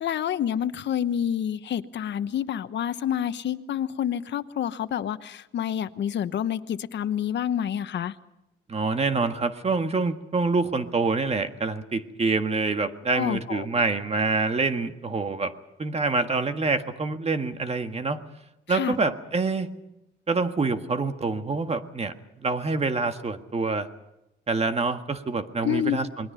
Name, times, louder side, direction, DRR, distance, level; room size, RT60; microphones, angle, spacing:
voice 1, 0.0-8.1 13.1-13.7 18.7-19.0 25.6-26.0, left 10 dB, 65° left, 12 dB, 1.1 m, -28 dB
voice 2, 8.7-15.5 15.8-18.2 18.7-19.7 20.3-23.9 24.5-26.3, right 3 dB, 30° right, 8 dB, 1.6 m, -26 dB
27.5 x 21.0 x 5.6 m, 0.90 s
cardioid pair, 90°, 20 cm